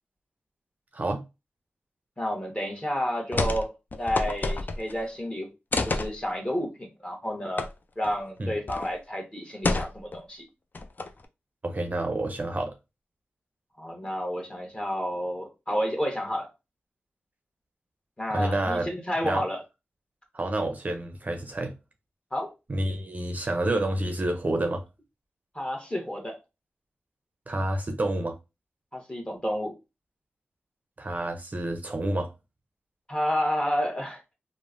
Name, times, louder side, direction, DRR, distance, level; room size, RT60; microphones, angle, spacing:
voice 1, 2.2-3.7 4.0-5.5 5.8-7.7 8.0-10.4 13.8-16.5 18.2-19.6 22.3-22.5 25.5-26.4 28.9-29.7 33.1-34.2, equal, 20° left, 1.1 m, -30 dB
sound 1, 3.3-3.7 3.9-5.0 5.7-6.1 7.6-7.7 8.0-8.1 8.7-8.9 9.6-10.2 10.7-11.3, left 3 dB, 45° left, 0.4 m, -28 dB
voice 2, 11.6-12.7 18.3-18.9 19.2-19.4 20.3-21.7 22.7-24.8 27.5-28.4 31.0-32.3, right 1 dB, 40° right, 0.5 m, -29 dB
3.0 x 2.1 x 2.5 m
cardioid pair, 40°, 4 cm